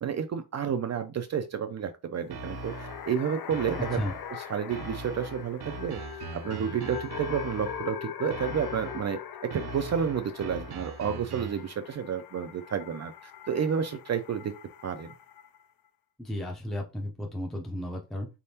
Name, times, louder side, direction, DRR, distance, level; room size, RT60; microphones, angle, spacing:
voice 1, 0.0-4.0 4.5-13.1 13.5-14.5 14.8-15.1, right 7 dB, 45° right, 8 dB, 0.4 m, -31 dB
sound 1, 2.2-15.6, left 9 dB, 65° left, 0.6 m, -42 dB
sound 2, 2.3-3.1 3.5-4.3 4.7-7.9 8.3-9.1 9.5-11.7, right 3 dB, 85° right, 0.8 m, -40 dB
voice 2, 16.2-18.3, left 1 dB, ahead, 0 dB, 0.6 m, -34 dB
4.1 x 3.5 x 2.8 m, 0.27 s
wide cardioid pair, 165°, 38 cm